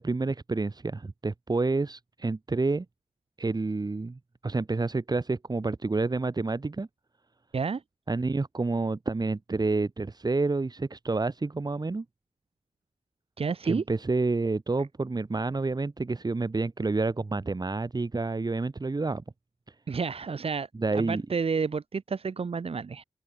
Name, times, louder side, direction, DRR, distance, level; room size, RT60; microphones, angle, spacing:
voice 1, 0.0-2.9 3.4-6.9 8.1-12.1 13.6-19.2 19.7-19.8 20.7-21.2, right 3 dB, 40° right, 7.2 m, -29 dB
voice 2, 13.4-13.8 19.9-23.0, right 5 dB, 75° right, 3.1 m, -30 dB
wide cardioid pair, 90°, 10 cm